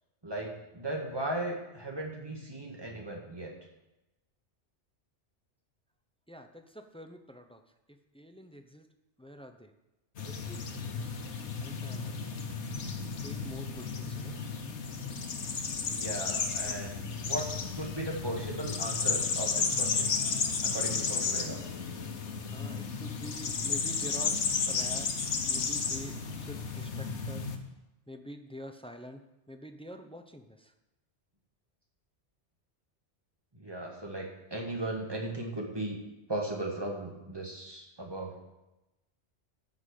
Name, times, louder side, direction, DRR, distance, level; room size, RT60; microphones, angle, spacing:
voice 1, 0.2-3.5 15.9-20.1 20.6-21.8 33.6-36.0 36.3-38.3, right 1 dB, 20° right, -1 dB, 1.8 m, -37 dB
voice 2, 6.3-7.6 7.9-8.9 9.2-9.7 10.2-10.7 11.6-12.2 13.2-14.4 22.5-25.2 25.5-27.5 28.1-30.7, equal, 10° left, 7 dB, 0.4 m, -47 dB
sound 1, 10.2-27.6, left 5 dB, 75° left, 1.3 m, -33 dB
12.5 x 5.5 x 6.6 m, 0.99 s
omnidirectional pair, 1.2 m